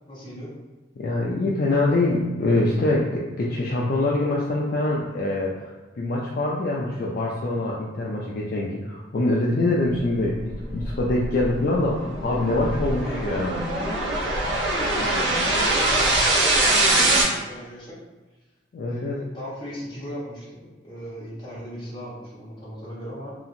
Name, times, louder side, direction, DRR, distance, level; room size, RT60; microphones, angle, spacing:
voice 1, 0.1-0.6 14.8-18.0 18.8-23.3, equal, 25° left, -8 dB, 1.0 m, -38 dB
voice 2, 1.0-13.6 18.7-19.2, left 2 dB, 50° left, -4 dB, 0.3 m, -24 dB
sound 1, 10.3-17.2, right 2 dB, 65° right, 0.7 m, -23 dB
2.8 x 2.4 x 2.6 m, 1.2 s
head